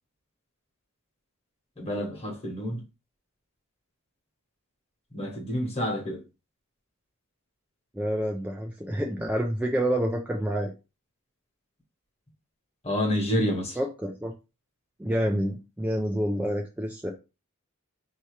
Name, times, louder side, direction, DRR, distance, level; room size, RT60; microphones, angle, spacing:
voice 1, 1.8-2.8 5.1-6.2 12.8-13.8, left 1 dB, 30° left, 1.3 m, -28 dB
voice 2, 7.9-10.7 13.8-14.3 15.0-17.1, equal, 5° right, 0.4 m, -28 dB
4.5 x 2.8 x 3.2 m
head